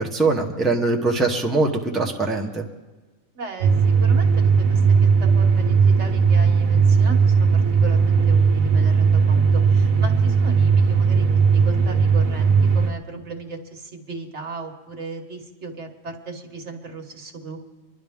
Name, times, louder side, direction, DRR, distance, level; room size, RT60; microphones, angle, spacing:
voice 1, 0.0-2.6, right 3 dB, ahead, 0 dB, 1.0 m, -22 dB
voice 2, 3.3-17.7, right 3 dB, 55° right, 3 dB, 1.5 m, -36 dB
sound 1, 3.6-12.9, right 5 dB, 75° right, 1.3 m, -17 dB
24.5 x 11.0 x 3.6 m, 1.2 s
omnidirectional pair, 1.4 m